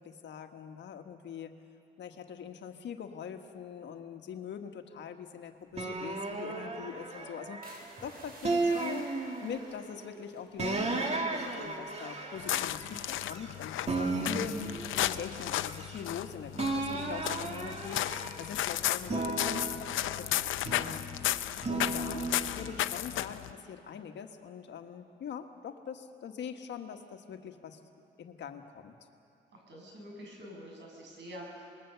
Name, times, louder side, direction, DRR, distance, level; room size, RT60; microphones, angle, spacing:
voice 1, 0.0-1.6 2.0-9.1 9.4-14.7 15.0-21.1 21.7-22.3 22.6-27.8 28.2-28.9, left 7 dB, 65° left, 6 dB, 1.5 m, -43 dB
sound 1, 5.7-7.9 8.4-9.8 10.6-13.5 13.9-16.2 16.5-18.6 19.0-21.0 21.6-22.8, right 3 dB, 35° right, 2.6 m, -35 dB
sound 2, 7.6-11.4 11.6-12.0 12.5-12.8, right 2 dB, 50° right, 6.5 m, -53 dB
sound 3, 12.4-23.5, left 13 dB, 80° left, 0.7 m, -34 dB
voice 2, 16.8-17.7 21.2-21.6 29.5-31.8, equal, 65° right, -1 dB, 7.5 m, -48 dB
26.5 x 20.5 x 6.9 m, 2.6 s
cardioid pair, 90°, 20 cm